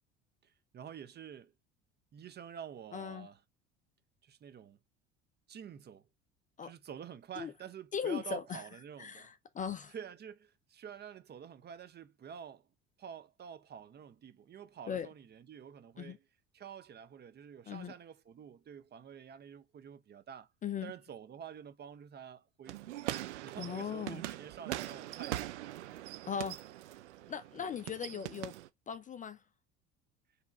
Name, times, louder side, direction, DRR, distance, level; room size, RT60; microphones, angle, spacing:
voice 1, 0.4-1.5 2.1-3.4 4.2-4.8 5.5-6.1 6.6-9.3 9.9-12.7 13.0-16.2 16.5-20.5 20.8-23.0 23.4-25.5 27.6-27.7, right 8 dB, 30° right, 0.7 m, -48 dB
voice 2, 2.9-3.3 6.6-6.7 7.4-7.5 7.9-8.6 9.0-9.9 14.9-15.1 16.0-16.2 17.7-17.9 20.6-20.9 23.6-24.2 26.2-26.7 27.3-28.5 28.9-29.4, left 7 dB, 20° left, 0.5 m, -38 dB
sound 1, 22.7-28.7, right 14 dB, 75° right, 0.6 m, -42 dB
4.6 x 3.4 x 3.3 m
figure-of-eight pair, 65°, 35 cm